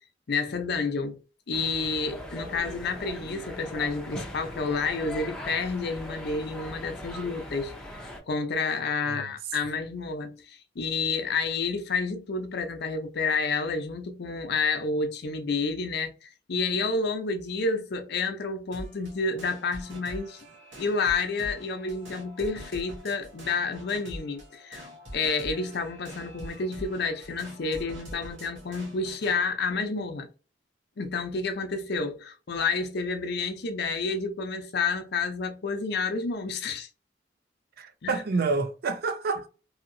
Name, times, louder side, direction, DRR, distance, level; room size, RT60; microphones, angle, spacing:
voice 1, 0.3-1.2 1.5-20.4 20.8-30.3 31.0-36.9 38.0-38.2, left 4 dB, 60° left, 0.5 m, -30 dB
sound 1, 1.5-8.2, left 1 dB, 5° left, 0.5 m, -40 dB
voice 2, 9.0-9.3 37.8-39.5, right 4 dB, 55° right, 0.4 m, -28 dB
sound 2, 18.7-29.4, equal, 80° right, 1.1 m, -44 dB
2.8 x 2.8 x 2.5 m
head